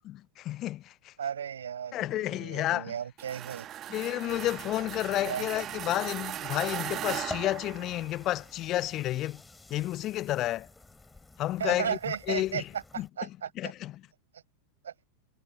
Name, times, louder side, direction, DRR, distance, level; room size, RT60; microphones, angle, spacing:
voice 1, 0.4-1.1 1.9-2.9 3.9-9.4 9.7-10.7 11.4-12.6 13.0-13.1 13.6-13.9, left 14 dB, 35° left, 0.6 m, -31 dB
voice 2, 1.2-3.7 5.2-5.5 11.6-13.7 14.3-14.4 14.8-14.9, right 8 dB, 65° right, 5.9 m, -35 dB
sound 1, 3.2-8.4, right 12 dB, 30° right, 1.5 m, -38 dB
sound 2, 4.3-13.1, left 3 dB, 10° left, 6.7 m, -50 dB
figure-of-eight pair, 90°, 0 cm